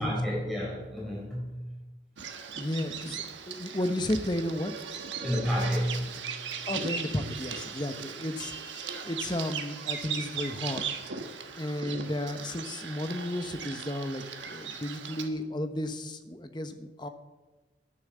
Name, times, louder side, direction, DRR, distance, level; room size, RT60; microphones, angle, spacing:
voice 1, 0.0-1.8 5.2-6.3, equal, ahead, -5 dB, 4.0 m, -31 dB
Bird vocalization bird call bird song, 2.2-15.3, right 6 dB, 75° right, 1.3 m, -38 dB
voice 2, 2.5-4.7 6.7-10.8 11.6-17.1, left 1 dB, 25° left, 8 dB, 0.9 m, -33 dB
10.5 x 10.0 x 7.3 m, 1.2 s
head